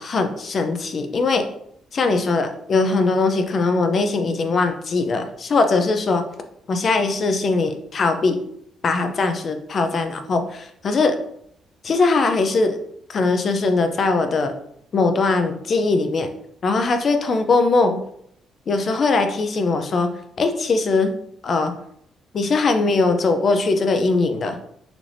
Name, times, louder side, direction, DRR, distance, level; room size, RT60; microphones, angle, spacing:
voice 1, 0.0-1.5 1.9-6.2 6.7-8.4 8.8-11.2 11.8-12.8 13.1-14.5 14.9-16.3 16.6-18.0 18.7-20.1 20.4-21.1 21.4-21.7 22.3-24.6, left 3 dB, 40° left, 7 dB, 0.6 m, -20 dB
5.9 x 3.3 x 2.6 m, 0.71 s
cardioid pair, 130°, 0 cm